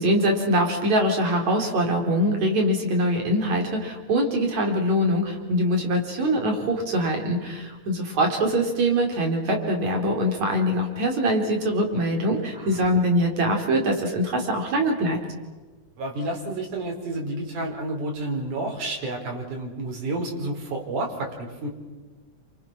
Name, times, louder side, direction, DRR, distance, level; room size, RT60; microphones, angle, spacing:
voice 1, 0.0-15.2, equal, 65° right, 2 dB, 5.4 m, -23 dB
voice 2, 16.0-21.7, right 2 dB, 80° right, 1 dB, 5.9 m, -30 dB
29.5 x 27.5 x 6.1 m, 1.3 s
omnidirectional pair, 3.5 m